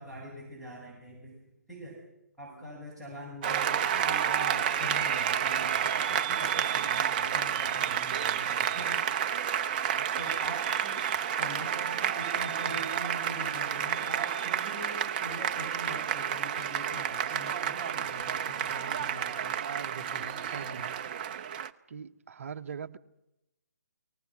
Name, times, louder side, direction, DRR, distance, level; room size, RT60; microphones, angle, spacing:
voice 1, 0.0-1.3 1.7-2.0 2.4-9.0 10.2-11.1 11.4-19.6 20.0-20.9, equal, 5° left, -7 dB, 6.9 m, -43 dB
Applause, 3.4-21.7, right 9 dB, 30° right, 0.7 m, -30 dB
voice 2, 19.5-21.0 21.9-23.0, right 7 dB, 50° right, 10 dB, 1.1 m, -42 dB
29.5 x 19.5 x 6.1 m, 0.90 s
figure-of-eight pair, 145°, 9 cm